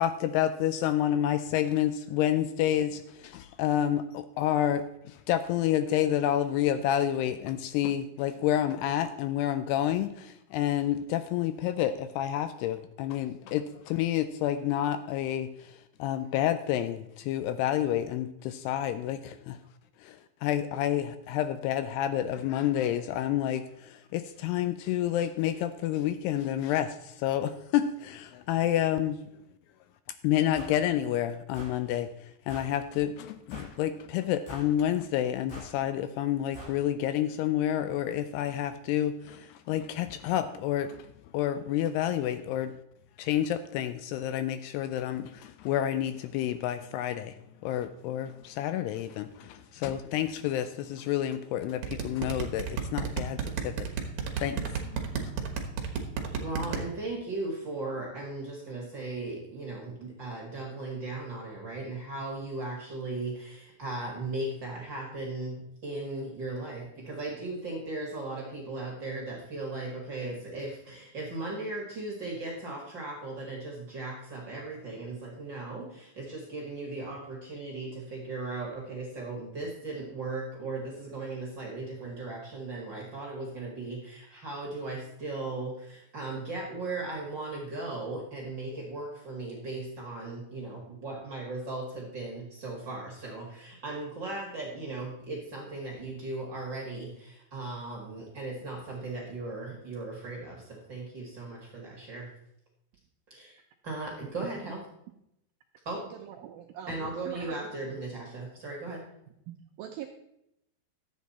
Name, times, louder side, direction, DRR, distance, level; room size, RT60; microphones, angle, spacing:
voice 1, 0.0-19.6 20.0-29.2 30.2-41.1 41.3-42.7 43.2-47.3 47.6-53.9 54.4-55.4, left 11 dB, 85° left, 11 dB, 2.4 m, -29 dB
sound 1, 30.5-30.8 31.5-31.8 32.5-32.7 33.5-33.8 34.5-34.7 35.5-35.7 36.5-36.8, right 1 dB, 60° left, 6.4 m, -44 dB
sound 2, 51.8-56.8, right 7 dB, 65° right, 1.7 m, -31 dB
voice 2, 56.4-65.6 65.8-102.3 103.3-103.6 103.8-104.8 105.8-106.1 106.9-109.0, right 2 dB, 50° right, -1 dB, 1.4 m, -37 dB
voice 3, 106.1-107.7 109.8-110.1, right 10 dB, 90° right, 3 dB, 2.1 m, -42 dB
12.0 x 8.3 x 4.1 m, 0.81 s
omnidirectional pair, 5.0 m